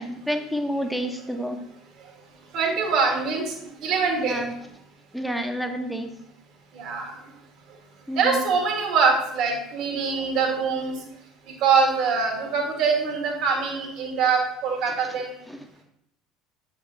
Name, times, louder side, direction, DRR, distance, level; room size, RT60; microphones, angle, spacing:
voice 1, 0.0-1.6 4.2-4.5 5.1-6.1 8.1-8.5 15.5-15.6, equal, ahead, 5 dB, 1.0 m, -29 dB
voice 2, 2.5-3.6 3.8-4.5 6.8-7.1 8.2-11.0 11.6-15.3, right 5 dB, 55° right, 2 dB, 1.7 m, -23 dB
7.7 x 5.2 x 2.8 m, 0.76 s
figure-of-eight pair, 65°, 0 cm